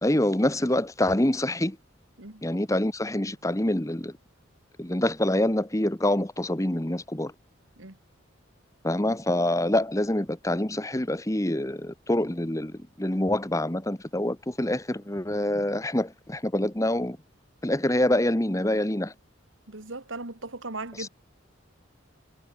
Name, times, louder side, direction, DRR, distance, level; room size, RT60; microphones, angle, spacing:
voice 1, 0.0-1.8 2.4-4.1 4.8-7.3 8.8-17.2 17.6-19.1 21.0-21.1, left 1 dB, 15° left, 1.2 m, -26 dB
voice 2, 19.7-21.1, right 3 dB, 70° right, 2.2 m, -38 dB
head